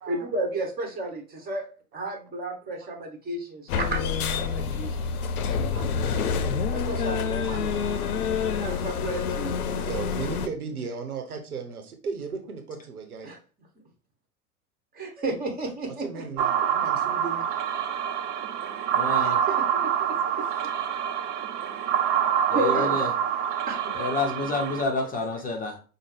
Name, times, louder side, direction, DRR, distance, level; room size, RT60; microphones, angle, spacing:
voice 1, 0.1-1.7 1.9-5.1 6.7-7.7 8.6-9.5 13.2-13.4 14.9-16.2 19.2-20.7 22.1-22.2 22.5-23.1 23.7-24.0, right 2 dB, 20° right, 2 dB, 1.3 m, -32 dB
sound 1, 3.7-10.5, left 6 dB, 80° left, 0.6 m, -27 dB
voice 2, 4.5-5.9 6.8-7.2 7.6-7.8 8.4-9.0 9.3-9.4 9.8-13.3 16.0-17.5 19.9-20.1 20.4-20.5 20.9-21.1 21.5-22.1 22.6-22.7 23.1-23.3 23.9-24.0 24.9-25.4, right 5 dB, 85° right, 5 dB, 0.9 m, -38 dB
sound 2, 16.4-24.8, right 9 dB, 55° right, 0.6 m, -26 dB
voice 3, 18.9-19.4 22.5-23.1 23.9-25.8, left 3 dB, 20° left, 2 dB, 0.7 m, -29 dB
5.2 x 2.1 x 3.3 m, 0.36 s
hypercardioid pair, 90°, 43 cm